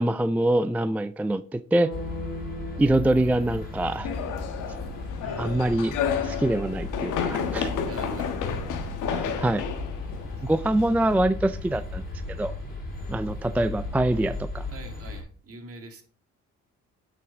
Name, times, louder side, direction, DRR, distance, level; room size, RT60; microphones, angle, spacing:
voice 1, 0.0-1.9 2.8-4.1 5.4-6.0 6.2-7.7 9.1-9.6 10.4-12.0 12.3-12.5 13.1-14.7, right 1 dB, 5° right, 12 dB, 0.3 m, -24 dB
sound 1, 1.7-5.8, right 1 dB, 55° left, 2.6 m, -41 dB
sound 2, 1.9-15.2, left 3 dB, 30° left, 3.7 m, -35 dB
sound 3, 4.0-11.1, left 7 dB, 90° left, 1.4 m, -31 dB
voice 2, 5.2-5.6 7.8-8.6 10.3-10.5 14.7-16.0, right 2 dB, 50° right, 6 dB, 2.0 m, -43 dB
9.2 x 6.0 x 3.7 m, 0.43 s
cardioid pair, 90°, 30 cm